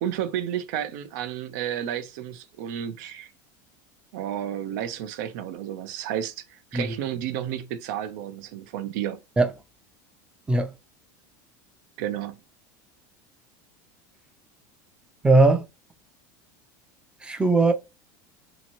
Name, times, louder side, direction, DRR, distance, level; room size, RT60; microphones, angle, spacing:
voice 1, 0.0-3.3 4.1-9.2 12.0-12.4, right 10 dB, 75° right, 0.5 m, -31 dB
voice 2, 15.2-15.6 17.2-17.7, right 2 dB, 10° right, 0.4 m, -19 dB
2.8 x 2.6 x 2.8 m
supercardioid pair, 140°, 10 cm